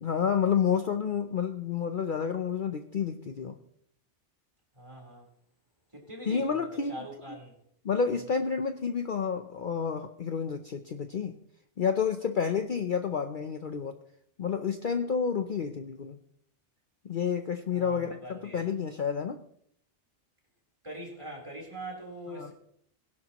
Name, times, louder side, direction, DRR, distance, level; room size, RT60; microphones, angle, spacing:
voice 1, 0.0-3.6 6.2-7.4 7.8-11.4 11.8-14.0 14.4-16.2 17.0-19.4 22.3-22.5, left 6 dB, 50° left, 7 dB, 0.8 m, -30 dB
voice 2, 4.7-5.2 5.9-7.5 17.7-18.6 20.8-22.5, right 1 dB, 25° right, -1 dB, 3.8 m, -43 dB
20.5 x 11.0 x 3.0 m, 0.68 s
omnidirectional pair, 1.2 m